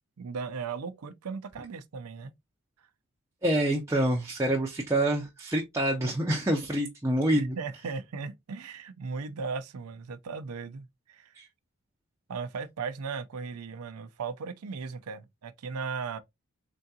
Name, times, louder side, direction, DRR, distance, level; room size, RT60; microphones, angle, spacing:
voice 1, 0.2-2.3 7.3-11.4 12.3-16.2, right 5 dB, 90° right, 0.5 m, -37 dB
voice 2, 3.4-7.6 11.4-11.5, right 1 dB, 15° right, 0.5 m, -27 dB
3.7 x 3.4 x 2.7 m
head